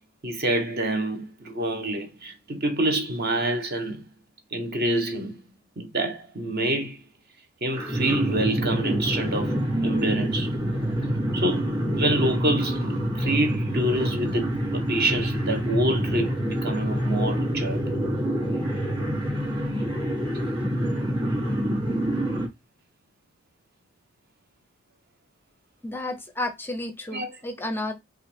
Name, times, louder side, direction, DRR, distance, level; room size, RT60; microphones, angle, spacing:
voice 1, 0.2-4.1 4.5-5.4 5.8-7.0 7.6-10.6 11.3-17.8 27.1-27.4, right 1 dB, 45° right, 1.0 m, -27 dB
sound 1, 7.7-22.5, equal, 25° right, 2.0 m, -26 dB
voice 2, 25.8-27.9, left 1 dB, 10° left, 0.5 m, -32 dB
5.5 x 2.6 x 3.5 m
head